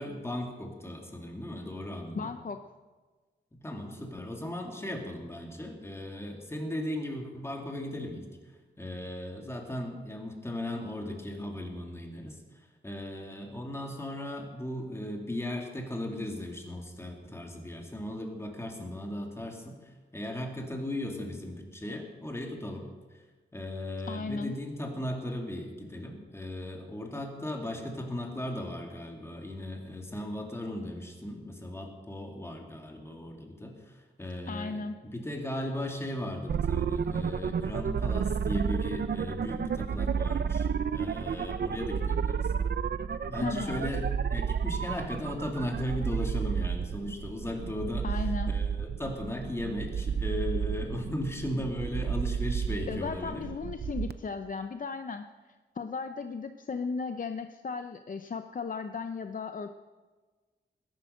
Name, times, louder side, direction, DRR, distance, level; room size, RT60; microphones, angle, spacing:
voice 1, 0.0-2.3 3.5-8.3 8.8-12.4 12.8-22.9 23.1-23.2 23.5-34.8 35.0-42.5 43.3-53.4, left 1 dB, 15° left, 2 dB, 2.5 m, -37 dB
voice 2, 2.1-2.6 24.1-24.5 34.5-34.9 43.4-43.9 48.0-48.5 52.9-55.3 55.7-59.7, left 4 dB, 45° left, 8 dB, 0.7 m, -35 dB
sound 1, 36.5-54.1, right 7 dB, 60° right, 0.6 m, -31 dB
20.0 x 11.0 x 6.5 m, 1.3 s
wide cardioid pair, 145°, 19 cm